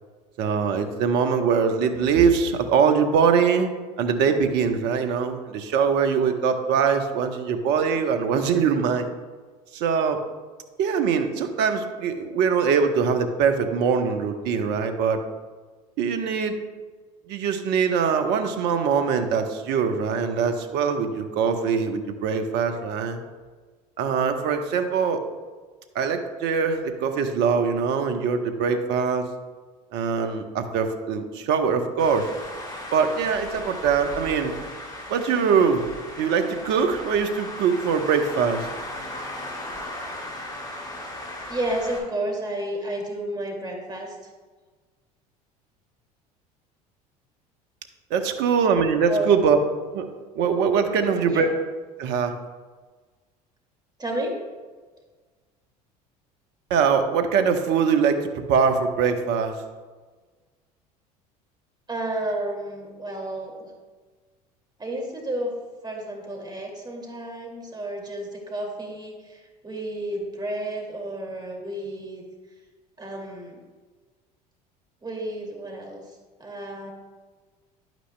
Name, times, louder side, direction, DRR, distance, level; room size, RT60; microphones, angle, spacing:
voice 1, 0.4-3.7 4.0-9.1 9.7-10.2 10.8-15.2 16.0-16.6 17.3-23.2 24.0-25.2 25.9-29.3 29.9-32.3 32.9-34.5 35.1-35.8 36.2-38.7 48.1-49.6 49.9-50.1 50.3-51.5 52.0-52.3 56.7-59.5, right 6 dB, 60° right, 7 dB, 1.0 m, -22 dB
Traffic noise roadway noise, 32.0-42.0, left 1 dB, 20° left, 2.8 m, -37 dB
voice 2, 41.5-44.2 49.1-49.3 50.9-51.4 54.0-54.3 61.9-63.7 64.8-65.5 65.8-72.2 73.0-73.6 75.0-76.9, right 1 dB, 20° right, 0 dB, 2.3 m, -31 dB
11.0 x 9.2 x 2.2 m, 1.4 s
hypercardioid pair, 70°, 20 cm